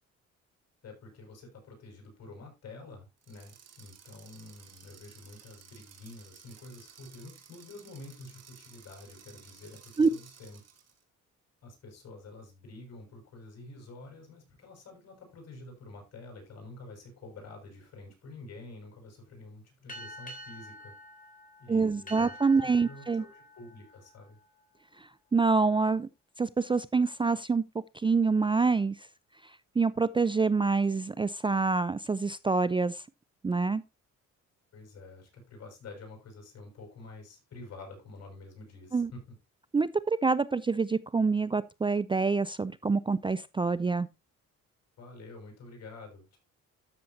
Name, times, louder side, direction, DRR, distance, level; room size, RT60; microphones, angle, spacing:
voice 1, 0.8-10.6 11.6-20.9 21.6-24.4 34.7-39.2 45.0-46.4, left 2 dB, 60° left, 6.6 m, -48 dB
sound 1, 3.2-11.0, right 7 dB, 55° right, 2.5 m, -55 dB
sound 2, 19.9-25.0, left 1 dB, 25° left, 3.6 m, -48 dB
voice 2, 21.7-23.2 25.3-26.1 26.4-27.6 27.9-29.0 29.8-33.0 33.4-33.8 38.9-39.1 39.7-44.1, right 4 dB, 15° right, 0.4 m, -26 dB
13.0 x 6.9 x 2.8 m
cardioid pair, 90°, 30 cm